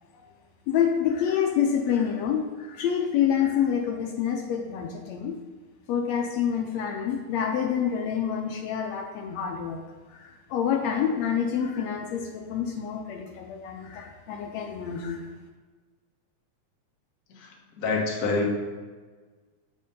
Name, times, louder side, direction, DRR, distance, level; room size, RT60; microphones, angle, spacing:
voice 1, 0.7-5.3 5.9-9.8 10.1-15.2, left 8 dB, 75° left, 2 dB, 1.7 m, -27 dB
voice 2, 17.8-18.5, left 3 dB, 55° left, -1 dB, 1.0 m, -26 dB
7.6 x 4.4 x 5.3 m, 1.4 s
omnidirectional pair, 3.4 m